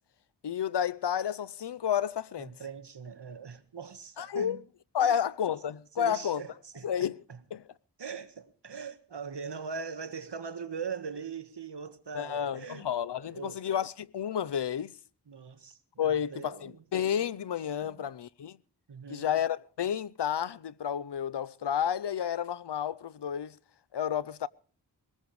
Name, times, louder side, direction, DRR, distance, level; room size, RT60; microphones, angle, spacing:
voice 1, 0.4-2.5 4.2-4.6 4.9-6.4 6.8-7.2 7.5-7.6 12.1-15.0 16.0-18.6 19.1-23.6 23.9-24.5, left 9 dB, 75° left, 0.6 m, -31 dB
voice 2, 2.4-4.6 5.0-5.2 6.0-7.4 8.0-12.9 13.2-13.6 15.3-16.8 17.8-18.0 18.9-19.4, right 6 dB, 75° right, 1.6 m, -41 dB
21.5 x 19.0 x 3.1 m
wide cardioid pair, 70°, 41 cm